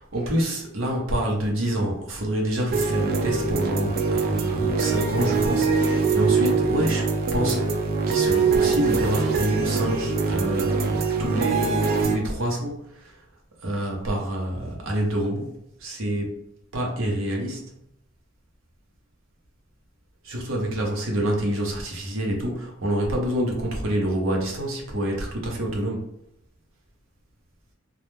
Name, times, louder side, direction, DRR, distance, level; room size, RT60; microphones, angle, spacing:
voice 1, 0.1-7.6 8.1-13.2 13.6-15.5 15.8-16.4 16.7-17.6 20.2-26.1, right 1 dB, 80° right, 0 dB, 0.7 m, -27 dB
sound 1, 2.7-12.2, right 4 dB, 45° right, 0.3 m, -23 dB
2.2 x 2.1 x 3.0 m, 0.78 s
head